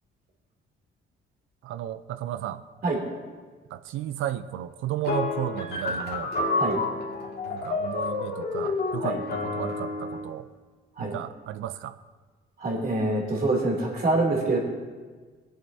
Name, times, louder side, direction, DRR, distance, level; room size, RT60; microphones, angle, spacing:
voice 1, 1.6-2.6 3.7-6.3 7.4-10.5 11.0-12.0, right 11 dB, 85° right, 13 dB, 0.5 m, -33 dB
sound 1, 5.0-10.3, left 3 dB, 55° left, 2.0 m, -29 dB
voice 2, 12.6-14.6, right 2 dB, 50° right, -1 dB, 2.9 m, -25 dB
19.5 x 7.6 x 2.7 m, 1.4 s
cardioid pair, 90°, 20 cm